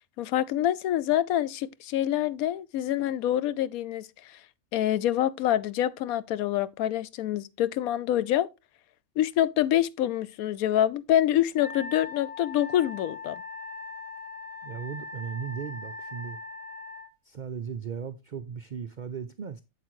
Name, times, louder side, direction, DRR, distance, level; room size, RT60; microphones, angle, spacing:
voice 1, 0.2-4.4 4.7-8.5 9.2-13.4, left 12 dB, 80° left, 1.0 m, -26 dB
Wind instrument woodwind instrument, 11.6-17.1, left 3 dB, 30° left, 0.9 m, -40 dB
voice 2, 14.6-16.4 17.2-19.6, right 7 dB, 75° right, 0.4 m, -37 dB
7.8 x 7.6 x 3.1 m
omnidirectional pair, 1.5 m